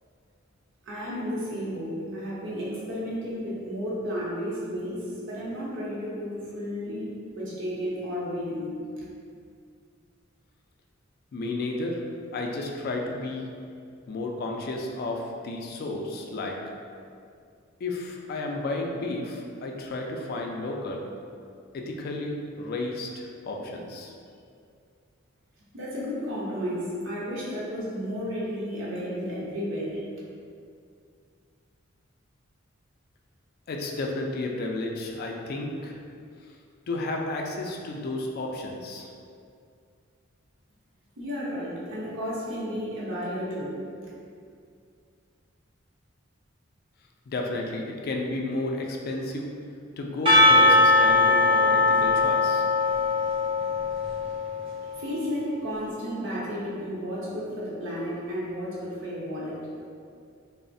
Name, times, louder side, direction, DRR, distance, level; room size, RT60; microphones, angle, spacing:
voice 1, 0.9-9.0 25.7-30.0 41.2-43.7 44.0-44.1 55.0-59.6, equal, 65° right, -6 dB, 0.7 m, -32 dB
voice 2, 11.3-12.0 12.3-13.5 14.1-16.6 17.8-21.0 21.7-24.1 33.7-36.0 36.9-39.1 47.3-49.5 50.0-52.6, left 2 dB, 50° left, 1 dB, 0.3 m, -32 dB
Percussion / Church bell, 50.3-54.8, left 2 dB, 25° right, 0.5 m, -20 dB
3.0 x 2.0 x 2.6 m, 2.3 s
head